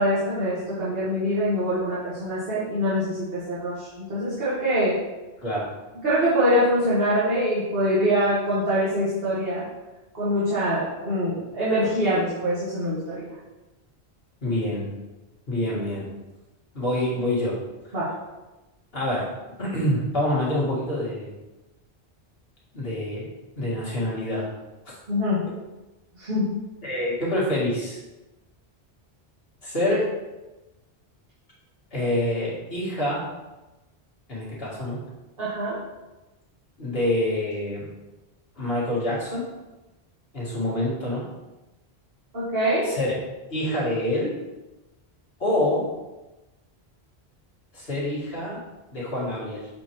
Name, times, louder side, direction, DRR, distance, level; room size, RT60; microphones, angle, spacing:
voice 1, 0.0-5.0 6.0-9.7 10.1-13.3 17.9-18.1 25.1-25.4 26.2-26.5 35.4-35.8 42.3-42.9, equal, 65° right, -10 dB, 1.8 m, -24 dB
voice 2, 5.4-5.7 14.4-14.9 15.5-16.1 16.7-17.6 18.9-19.3 19.6-21.3 22.7-23.3 23.6-24.5 26.8-28.0 29.6-30.1 31.9-33.3 34.3-35.0 36.8-37.9 38.6-39.5 40.3-41.2 42.8-43.1 43.5-44.3 45.4-45.9 47.7-48.6 48.9-49.7, left 1 dB, 65° left, -7 dB, 2.1 m, -26 dB
7.4 x 4.4 x 3.0 m, 1.1 s
omnidirectional pair, 1.1 m